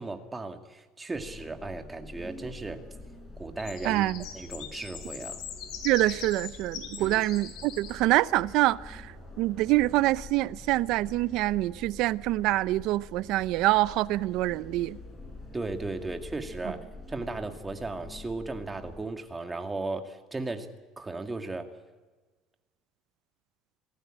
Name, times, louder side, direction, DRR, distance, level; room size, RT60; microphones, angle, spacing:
voice 1, 0.0-2.8 3.4-4.0 4.3-5.4 7.0-7.2 15.5-20.7 21.0-21.7, right 3 dB, 15° right, 2.2 m, -36 dB
sound 1, 1.1-19.0, left 2 dB, 15° left, 7.7 m, -46 dB
sound 2, 3.6-8.0 11.5-12.4 12.7-13.1 13.7-13.8 14.1-15.9, left 8 dB, 65° left, 6.4 m, -43 dB
voice 2, 3.8-4.2 5.8-15.0, right 17 dB, 70° right, 0.7 m, -26 dB
26.0 x 18.0 x 8.9 m
cardioid pair, 130°, 0 cm